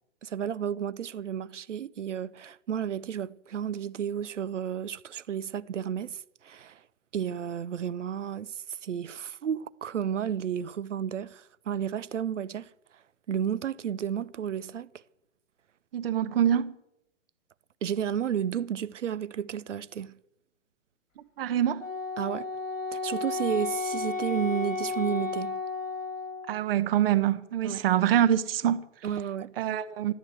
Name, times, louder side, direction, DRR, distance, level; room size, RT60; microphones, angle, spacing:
voice 1, 0.2-6.8 7.1-13.0 13.3-14.9 17.8-20.1 22.2-22.5 22.9-25.6 27.6-27.8 29.0-29.5, right 9 dB, 70° right, 0.7 m, -32 dB
voice 2, 15.9-16.7 21.4-21.9 26.5-28.9 29.6-30.1, right 10 dB, 45° right, 1.2 m, -25 dB
Wind instrument woodwind instrument, 21.8-26.6, left 4 dB, 85° left, 2.9 m, -33 dB
14.0 x 11.0 x 7.8 m
figure-of-eight pair, 120°, 38 cm